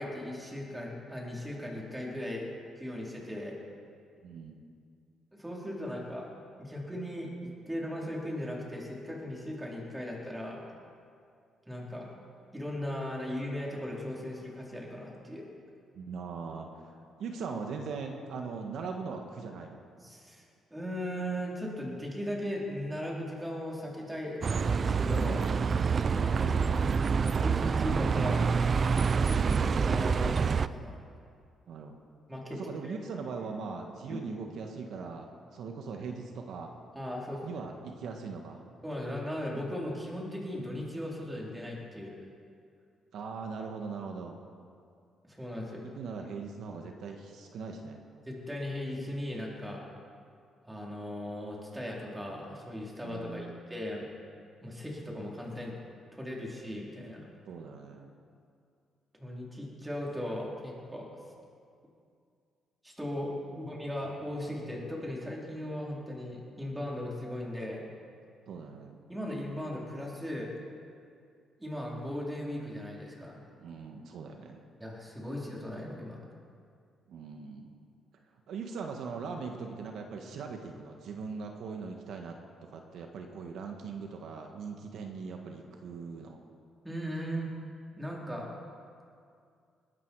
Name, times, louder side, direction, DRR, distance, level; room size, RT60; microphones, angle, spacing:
voice 1, 0.0-2.5 2.8-3.6 5.3-6.3 6.6-10.6 11.7-12.1 12.5-15.5 20.0-20.4 20.7-25.4 26.1-26.7 27.3-28.5 29.1-31.0 32.3-33.0 34.1-34.2 36.9-37.6 38.8-42.2 45.4-45.8 48.3-49.8 50.7-54.1 54.6-55.7 56.1-57.2 59.1-61.1 62.8-67.8 69.1-70.5 71.6-73.4 74.8-76.2 86.8-87.5 88.0-88.5, left 1 dB, 10° right, -3 dB, 4.3 m, -38 dB
voice 2, 4.2-4.6 15.9-16.9 17.2-19.8 26.3-26.7 31.7-32.0 32.6-36.7 37.4-38.6 43.1-44.4 45.9-48.0 53.0-53.8 57.5-58.1 63.5-63.7 68.5-69.0 73.5-74.6 77.1-77.7 78.5-82.4 82.6-86.4, right 5 dB, 75° right, 3 dB, 1.5 m, -40 dB
Bus, 24.4-30.7, right 5 dB, 45° right, 0.5 m, -27 dB
20.5 x 13.0 x 4.8 m, 2.3 s
cardioid pair, 90°, 0 cm